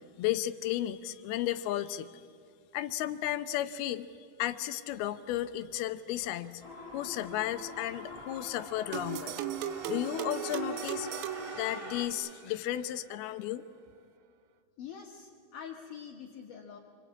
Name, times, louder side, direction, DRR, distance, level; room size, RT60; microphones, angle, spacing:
voice 1, 0.2-2.1 2.7-4.1 4.4-6.6 6.9-9.3 9.9-11.2 11.6-13.6, left 13 dB, 75° left, 11 dB, 2.7 m, -33 dB
sound 1, 6.6-12.1, left 1 dB, 10° right, 2.0 m, -44 dB
sound 2, 8.9-12.4, right 11 dB, 75° right, 2.5 m, -37 dB
voice 2, 14.8-16.8, left 7 dB, 60° left, 0 dB, 2.9 m, -45 dB
27.5 x 24.5 x 8.5 m, 2.3 s
omnidirectional pair, 4.7 m